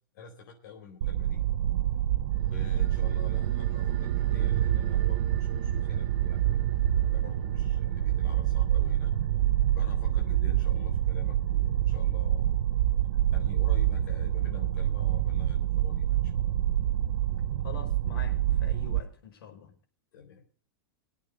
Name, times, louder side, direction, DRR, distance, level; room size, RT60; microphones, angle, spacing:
voice 1, 0.1-1.4 2.4-6.6 7.0-9.2 9.7-12.5 13.3-16.4 20.1-20.5, left 7 dB, 50° left, 4.3 m, -48 dB
sound 1, 1.0-19.0, right 12 dB, 80° right, 0.9 m, -27 dB
sound 2, 2.3-13.2 13.5-13.6, right 9 dB, 30° right, 1.0 m, -42 dB
voice 2, 17.6-19.7, left 7 dB, 75° left, 5.5 m, -45 dB
22.0 x 8.7 x 5.3 m
supercardioid pair, 175°, 12 cm